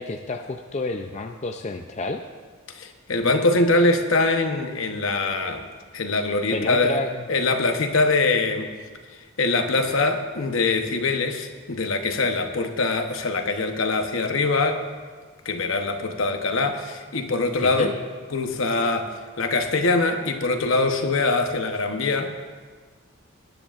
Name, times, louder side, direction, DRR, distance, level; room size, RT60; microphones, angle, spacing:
voice 1, 0.0-2.2 6.5-7.3 17.6-17.9, left 3 dB, 30° left, 4 dB, 0.4 m, -30 dB
voice 2, 2.7-5.6 5.9-7.0 7.3-8.7 9.1-14.8 15.4-17.9 18.3-22.3, left 3 dB, 65° left, 6 dB, 0.9 m, -23 dB
19.0 x 10.0 x 2.5 m, 1.5 s
head